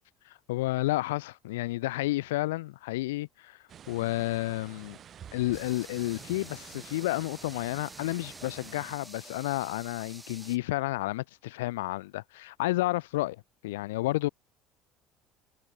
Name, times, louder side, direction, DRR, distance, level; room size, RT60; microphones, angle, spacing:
voice 1, 0.5-3.6 3.9-5.0 5.3-13.4 13.6-14.3, left 18 dB, 80° left, 0.4 m, -31 dB
sound 1, 3.7-9.0, right 9 dB, 45° right, 0.9 m, -49 dB
sound 2, 5.5-10.6, right 1 dB, 5° right, 3.4 m, -49 dB
hypercardioid pair, 65°, 0 cm